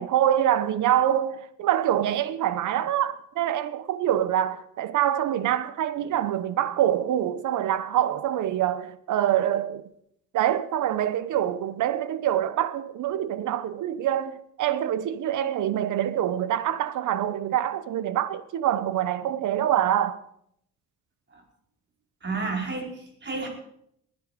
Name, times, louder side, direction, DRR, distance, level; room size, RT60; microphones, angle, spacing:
voice 1, 0.0-9.8 10.3-20.2, right 11 dB, 75° right, 1.1 m, -25 dB
voice 2, 22.2-23.5, right 3 dB, 35° right, 5.0 m, -32 dB
20.0 x 10.5 x 5.3 m
cardioid pair, 90°, 30 cm